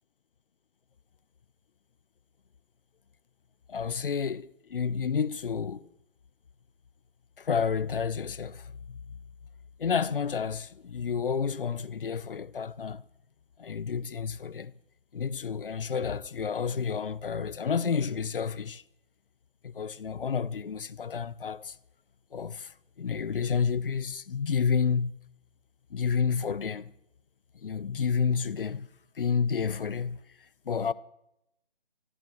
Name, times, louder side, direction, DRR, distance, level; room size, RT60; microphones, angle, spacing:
voice 1, 3.7-5.9 7.4-9.0 9.8-13.0 13.6-14.7 15.1-18.8 19.6-21.8 22.3-25.2 25.9-26.9 27.6-28.9 29.2-30.2 30.7-30.9, left 6 dB, 65° left, 0.7 m, -30 dB
25.5 x 13.5 x 3.0 m
figure-of-eight pair, 160°, 29 cm